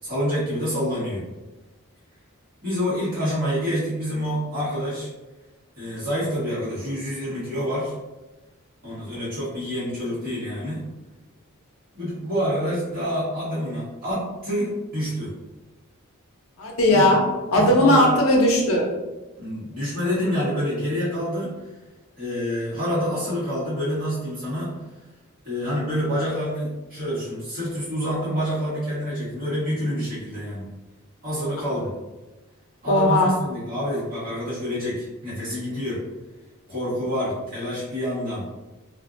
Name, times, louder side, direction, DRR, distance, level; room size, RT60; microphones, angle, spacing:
voice 1, 0.0-1.3 2.6-5.1 5.8-7.9 8.8-10.9 11.9-15.3 16.9-17.2 17.5-18.1 19.4-21.5 22.2-24.8 25.4-30.7 31.2-32.0 32.8-36.0 36.7-38.5, equal, 40° right, -10 dB, 1.5 m, -27 dB
voice 2, 16.6-17.2 17.5-18.9 32.9-33.3, left 1 dB, 70° left, -1 dB, 0.6 m, -18 dB
2.5 x 2.5 x 2.5 m, 1.1 s
head